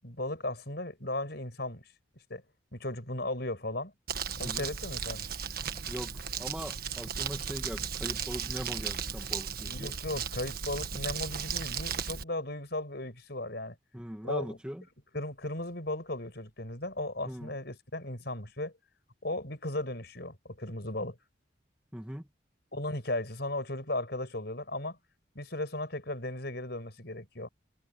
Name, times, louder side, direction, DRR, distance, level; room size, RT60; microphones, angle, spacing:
voice 1, 0.0-1.8 2.3-2.4 2.7-3.9 4.4-5.3 9.7-13.8 14.2-14.6 15.1-18.7 19.2-21.2 22.7-25.0 25.3-27.5, left 1 dB, 55° left, 6.6 m, -36 dB
Crumpling crinkling, 4.1-12.2, right 7 dB, 50° right, 1.6 m, -35 dB
voice 2, 4.4-4.7 5.9-9.9 13.9-14.8 17.3-17.5 21.9-22.3, equal, 5° right, 2.2 m, -41 dB
head